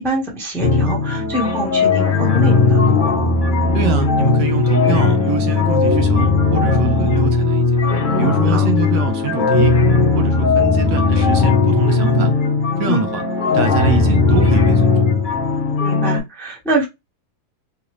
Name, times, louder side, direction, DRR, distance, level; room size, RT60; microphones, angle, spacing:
voice 1, 0.0-2.8 8.5-8.7 12.9-13.0 15.8-16.9, right 1 dB, ahead, 0.7 m, -24 dB
sound 1, 0.6-16.2, left 4 dB, 40° left, 0.7 m, -16 dB
voice 2, 3.7-7.8 8.2-9.8 10.1-12.3 12.8-13.2 13.5-15.1, right 8 dB, 75° right, 1.3 m, -24 dB
3.8 x 2.4 x 3.0 m
omnidirectional pair, 2.0 m